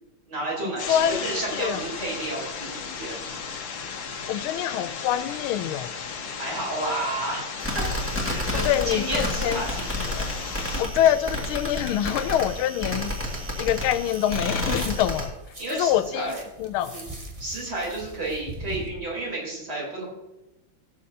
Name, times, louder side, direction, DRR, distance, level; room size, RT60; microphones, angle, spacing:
voice 1, 0.3-3.3 6.3-7.8 8.2-9.9 10.7-10.8 15.6-16.4 16.8-17.1 17.4-20.0, right 2 dB, 50° right, -4 dB, 4.3 m, -31 dB
sound 1, 0.8-10.8, left 6 dB, 70° left, 1.7 m, -35 dB
voice 2, 0.9-1.2 1.6-1.8 4.3-5.9 8.6-9.6 10.1-10.3 10.8-13.2 13.6-15.3 15.7-16.3 16.6-17.0, left 11 dB, 90° left, 13 dB, 1.4 m, -25 dB
sound 2, 7.6-15.3, left 1 dB, 5° right, 1.8 m, -30 dB
sound 3, 13.0-14.4 14.7-18.9, right 1 dB, 25° right, 0.9 m, -42 dB
16.5 x 7.7 x 2.8 m, 0.99 s
omnidirectional pair, 2.3 m